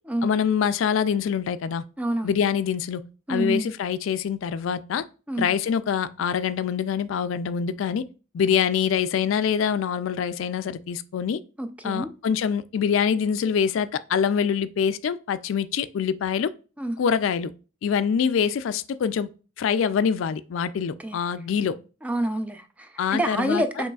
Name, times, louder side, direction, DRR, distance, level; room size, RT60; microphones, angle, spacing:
voice 1, 0.2-1.8 2.2-3.0 3.3-5.0 5.4-8.0 8.3-11.4 11.8-16.5 17.0-17.5 17.8-19.3 19.6-21.8 23.0-23.6, left 7 dB, 75° left, 0.3 m, -25 dB
voice 2, 2.0-2.3 3.3-3.7 5.3-5.5 11.6-12.1 16.8-17.0 21.0-21.2 22.0-23.9, right 1 dB, 5° right, 0.3 m, -27 dB
6.5 x 3.1 x 2.3 m
head